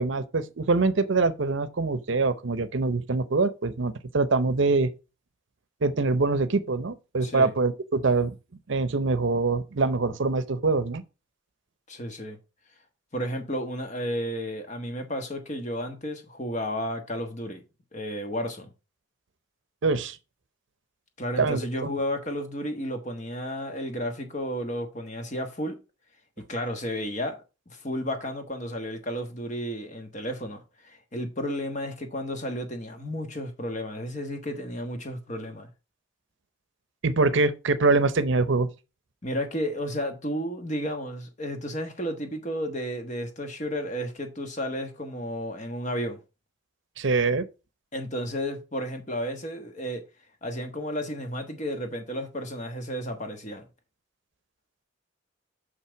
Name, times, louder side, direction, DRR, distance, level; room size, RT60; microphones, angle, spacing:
voice 1, 0.0-4.9 5.8-8.4 8.7-11.0 19.8-20.2 21.4-21.6 37.0-38.7 47.0-47.5, right 3 dB, 70° right, 0.7 m, -24 dB
voice 2, 7.2-7.5 11.9-12.4 13.1-17.6 17.9-18.7 21.2-25.7 26.5-27.4 27.7-35.7 39.2-46.2 47.9-50.0 50.4-53.7, equal, 35° left, 1.3 m, -32 dB
6.5 x 5.8 x 4.5 m
head